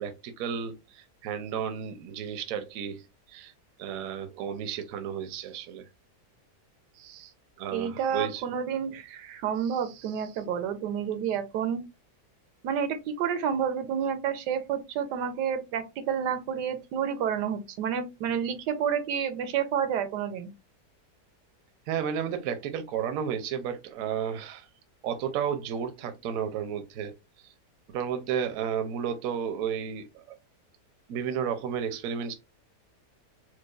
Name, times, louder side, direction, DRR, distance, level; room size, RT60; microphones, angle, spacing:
voice 1, 0.0-3.5 3.8-5.8 6.9-7.3 7.6-8.4 9.6-9.8 21.9-24.7 25.0-27.1 27.9-30.3 31.1-32.3, right 8 dB, 70° right, 0.9 m, -33 dB
voice 2, 7.7-11.9 12.6-20.5, right 8 dB, 85° right, 1.2 m, -30 dB
4.5 x 2.2 x 2.3 m
omnidirectional pair, 1.8 m